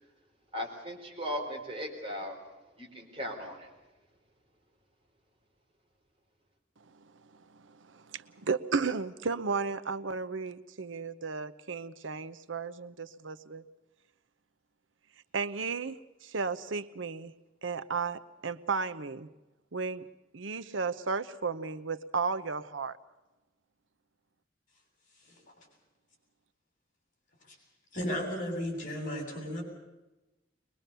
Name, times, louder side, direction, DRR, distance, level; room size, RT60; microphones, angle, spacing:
voice 1, 0.5-2.4 2.8-3.7, equal, 30° right, 1 dB, 4.0 m, -37 dB
voice 2, 7.5-13.6 15.3-16.0 16.2-17.3 17.6-19.3 19.7-20.0 20.3-23.0, right 4 dB, 80° right, 11 dB, 0.8 m, -34 dB
voice 3, 27.9-29.6, equal, 45° left, 2 dB, 7.5 m, -34 dB
22.5 x 21.5 x 6.8 m, 1.0 s
head